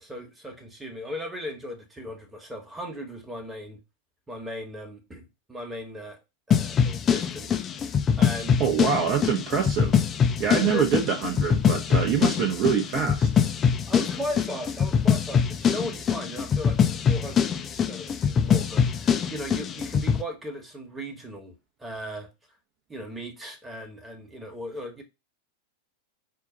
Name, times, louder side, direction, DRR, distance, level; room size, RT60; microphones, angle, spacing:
voice 1, 0.0-3.8 4.3-6.2 6.5-8.6 10.6-10.9 13.9-22.3 22.9-25.0, equal, 10° right, 1.3 m, -37 dB
sound 1, 6.5-20.2, left 7 dB, 25° left, 0.6 m, -23 dB
voice 2, 8.6-9.9 10.4-13.3, right 7 dB, 35° right, 0.9 m, -25 dB
5.6 x 2.4 x 3.8 m
figure-of-eight pair, 90°, 0 cm